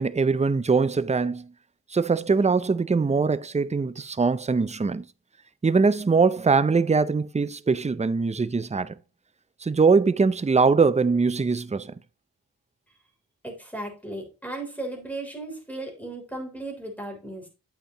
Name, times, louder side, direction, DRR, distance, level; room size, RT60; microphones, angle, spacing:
voice 1, 0.0-1.5 1.9-5.0 5.6-8.9 9.6-11.9, right 4 dB, 20° right, 0.5 m, -22 dB
voice 2, 13.4-17.5, right 2 dB, 5° left, 3.4 m, -36 dB
8.3 x 8.1 x 3.0 m
wide cardioid pair, 60°, 39 cm